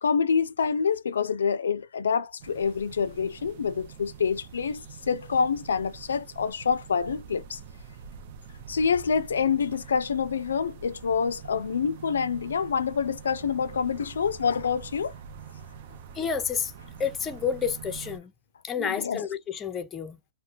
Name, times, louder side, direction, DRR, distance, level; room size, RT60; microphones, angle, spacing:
voice 1, 0.0-7.6 8.7-15.1 18.8-19.2, left 6 dB, 85° left, 0.3 m, -27 dB
sound 1, 2.4-18.2, right 7 dB, 55° right, 0.6 m, -45 dB
voice 2, 16.1-16.7 17.0-18.3 18.6-20.2, left 7 dB, 20° left, 0.5 m, -30 dB
2.2 x 2.1 x 2.6 m
hypercardioid pair, 125°, 0 cm